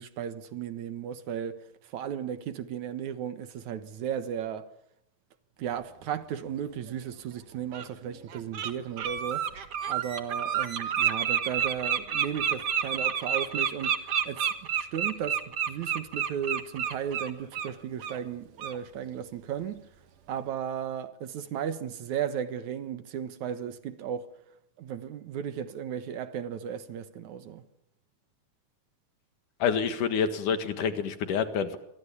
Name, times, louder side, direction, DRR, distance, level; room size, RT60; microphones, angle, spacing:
voice 1, 0.0-4.7 5.6-9.5 9.9-14.0 14.3-19.8 20.3-24.3 24.8-27.6, right 9 dB, 70° right, 2.7 m, -35 dB
Bird, 6.9-7.0 7.7-7.9 8.3-8.7 9.0-17.7 18.0-18.2 18.6-18.8, right 9 dB, 55° right, 2.4 m, -29 dB
voice 2, 29.6-31.8, left 7 dB, 90° left, 3.3 m, -27 dB
27.5 x 23.0 x 7.1 m
omnidirectional pair, 3.5 m